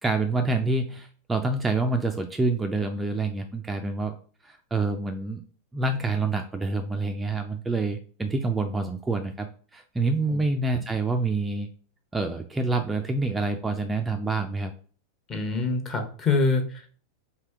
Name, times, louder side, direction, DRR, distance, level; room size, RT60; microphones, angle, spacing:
voice 1, 0.0-4.1 4.4-5.4 5.7-9.5 9.7-11.7 12.1-14.7, right 3 dB, 10° right, 5 dB, 0.4 m, -27 dB
voice 2, 15.3-16.9, left 3 dB, 25° left, 4 dB, 0.9 m, -25 dB
3.3 x 2.8 x 4.5 m, 0.42 s
figure-of-eight pair, 90°, 0 cm